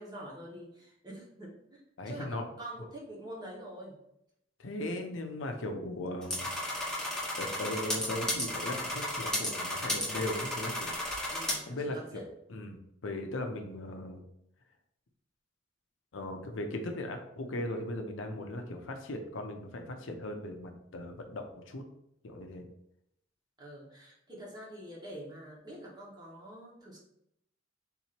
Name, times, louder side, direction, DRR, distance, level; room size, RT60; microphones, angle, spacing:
voice 1, 0.0-4.0 11.3-12.3 23.6-27.0, right 1 dB, 20° right, -4 dB, 1.3 m, -46 dB
voice 2, 2.0-2.4 4.6-6.5 7.4-11.0 11.7-12.2 12.5-14.2 16.1-21.8 22.2-22.7, left 1 dB, 75° left, 4 dB, 0.6 m, -38 dB
sound 1, 6.2-11.5, left 1 dB, 5° left, 1.1 m, -34 dB
3.8 x 2.9 x 4.3 m, 0.78 s
head